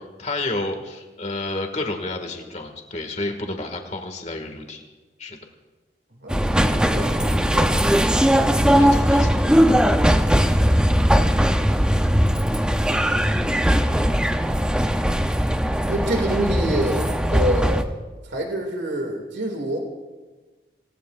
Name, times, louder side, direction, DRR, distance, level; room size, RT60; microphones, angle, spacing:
voice 1, 0.0-4.8 5.2-5.4 8.8-9.4, left 2 dB, 40° left, 4 dB, 2.0 m, -30 dB
voice 2, 6.2-7.8 15.9-17.0 17.3-17.9 18.2-19.8, right 1 dB, 85° right, 2 dB, 2.4 m, -27 dB
sound 1, 6.3-17.8, equal, 5° right, 0.6 m, -19 dB
27.5 x 18.0 x 2.5 m, 1.3 s
head